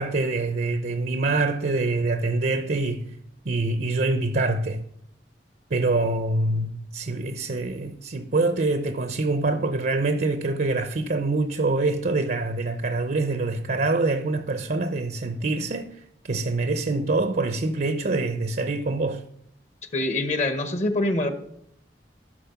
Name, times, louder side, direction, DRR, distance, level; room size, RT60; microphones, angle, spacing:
voice 1, 0.0-3.1 3.4-4.8 5.7-19.2, right 2 dB, 55° right, 0.7 m, -25 dB
voice 2, 19.9-21.3, left 2 dB, 40° left, 1.1 m, -24 dB
13.5 x 6.3 x 5.8 m
head